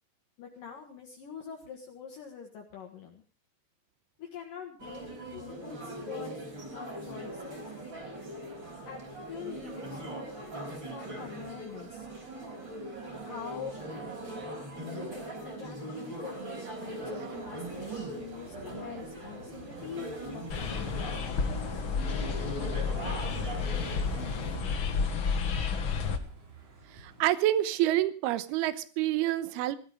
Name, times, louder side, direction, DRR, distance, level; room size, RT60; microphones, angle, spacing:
voice 1, 0.4-3.2 4.2-6.3 6.7-7.7 8.9-10.4 10.9-12.1 13.2-13.7 14.7-21.7, left 7 dB, 60° left, 1 dB, 2.9 m, -45 dB
sound 1, 4.8-24.6, right 1 dB, 25° right, 5.5 m, -40 dB
sound 2, 17.3-27.2, right 3 dB, 50° right, 4.6 m, -53 dB
sound 3, 20.5-26.2, left 5 dB, 80° left, 1.1 m, -31 dB
voice 2, 26.9-29.8, right 14 dB, 75° right, 13 dB, 2.8 m, -28 dB
18.0 x 13.5 x 5.1 m, 0.38 s
omnidirectional pair, 5.0 m